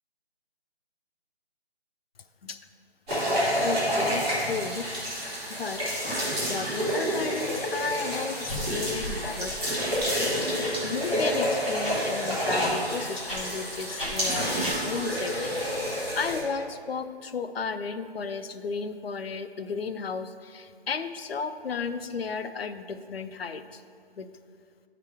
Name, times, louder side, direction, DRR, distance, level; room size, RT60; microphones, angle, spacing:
sound 1, 3.1-16.4, equal, ahead, 1.6 m, -29 dB
voice 1, 3.6-4.9 5.6-9.9 10.6-15.6 15.9-23.8 24.1-24.3, left 5 dB, 65° left, 10 dB, 0.5 m, -34 dB
sound 2, 8.5-8.6 9.0-9.1 9.5-9.6 9.9-10.0 10.6-10.7 11.2-11.3 11.8-11.9 12.6-12.7 13.3-13.4 14.0-14.1 14.6-14.7, equal, 30° left, 1.8 m, -35 dB
11.0 x 4.8 x 3.4 m, 2.2 s
hypercardioid pair, 180°, 32 cm